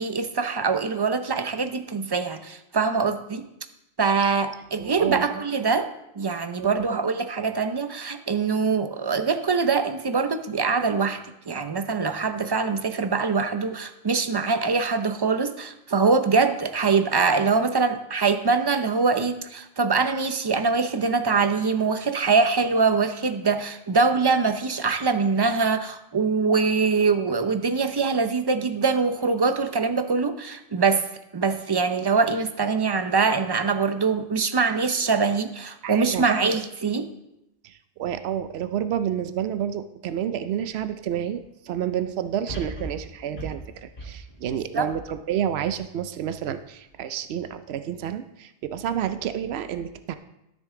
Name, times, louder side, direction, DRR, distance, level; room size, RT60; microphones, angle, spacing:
voice 1, 0.0-3.4 4.0-5.9 6.2-11.2 11.5-31.0 31.3-37.1 44.7-44.9, right 4 dB, 30° right, 9 dB, 0.5 m, -23 dB
voice 2, 4.8-5.3 6.6-6.8 35.8-36.3 37.6-37.7 38.0-50.2, right 9 dB, 85° right, 10 dB, 0.8 m, -29 dB
sound 1, 40.7-40.8 42.5-45.8 46.3-46.4, right 2 dB, 80° left, 3.3 m, -38 dB
13.0 x 6.4 x 3.7 m, 0.86 s
omnidirectional pair, 1.1 m